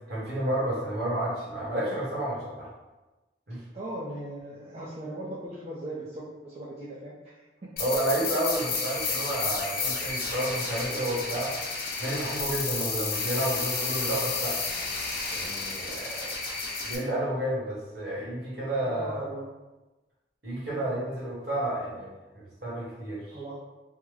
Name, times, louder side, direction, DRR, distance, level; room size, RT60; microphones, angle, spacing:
voice 1, 0.1-2.7 3.5-3.6 7.8-11.6 12.0-14.6 15.3-16.3 16.8-19.3 20.4-23.4, right 1 dB, 55° right, -6 dB, 1.1 m, -31 dB
voice 2, 3.7-7.5 18.8-19.6 20.7-20.9 23.3-23.6, right 1 dB, 35° right, -7 dB, 0.4 m, -39 dB
sound 1, 7.8-17.0, left 4 dB, 50° left, 0.6 m, -31 dB
3.5 x 2.1 x 3.1 m, 1.1 s
head